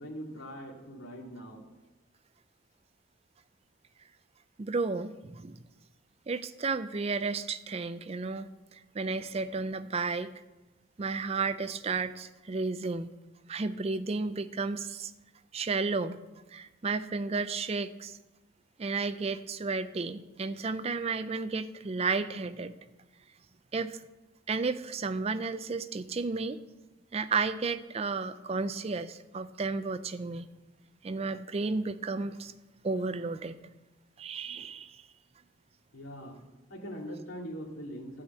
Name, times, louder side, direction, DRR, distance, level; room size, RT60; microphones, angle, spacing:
voice 1, 0.0-1.6 35.9-36.4 36.7-38.2, equal, 85° left, -1 dB, 2.2 m, -42 dB
voice 2, 4.6-5.6 6.3-10.3 11.0-13.1 13.5-15.1 15.5-16.2 16.5-18.2 18.8-22.7 23.7-24.0 24.5-26.6 27.1-30.5 31.0-32.5 32.8-33.6 34.2-35.0, right 4 dB, 30° right, 13 dB, 0.4 m, -32 dB
13.0 x 5.0 x 7.9 m, 1.1 s
head